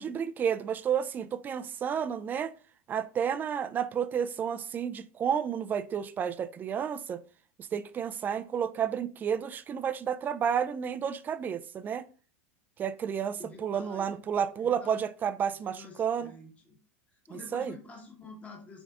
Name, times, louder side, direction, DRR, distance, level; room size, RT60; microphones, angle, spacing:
voice 1, 0.0-2.5 2.9-7.2 7.7-12.0 12.8-16.3 17.3-17.7, right 8 dB, 25° right, 0.3 m, -31 dB
voice 2, 13.4-14.2 14.6-15.0 15.4-16.8 17.1-18.8, left 3 dB, 20° left, 1.2 m, -48 dB
5.3 x 3.5 x 2.4 m
supercardioid pair, 115°, 7 cm